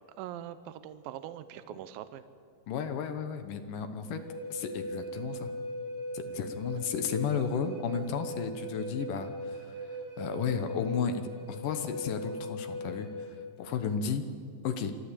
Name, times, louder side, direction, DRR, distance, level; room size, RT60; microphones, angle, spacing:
voice 1, 0.2-2.2, right 11 dB, 85° right, 12 dB, 2.0 m, -42 dB
voice 2, 2.7-4.2 4.5-5.5 6.1-11.2 11.5-14.2 14.6-14.9, left 7 dB, 70° left, 8 dB, 2.1 m, -33 dB
Wind instrument woodwind instrument, 4.1-13.4, equal, 15° right, 4.5 m, -39 dB
26.0 x 13.0 x 8.4 m, 2.3 s
omnidirectional pair, 5.1 m